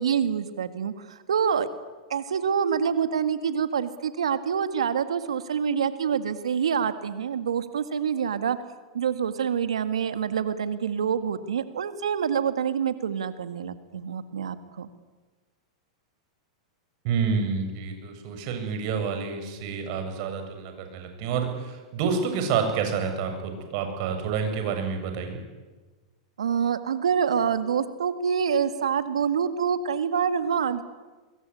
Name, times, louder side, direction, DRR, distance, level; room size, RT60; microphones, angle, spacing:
voice 1, 0.0-1.7 2.1-8.6 8.9-14.9 26.4-30.8, right 7 dB, 80° right, 11 dB, 1.9 m, -26 dB
voice 2, 17.0-25.4, right 6 dB, 55° right, 6 dB, 7.6 m, -28 dB
25.0 x 22.5 x 9.9 m, 1.3 s
hypercardioid pair, 105°, 3 cm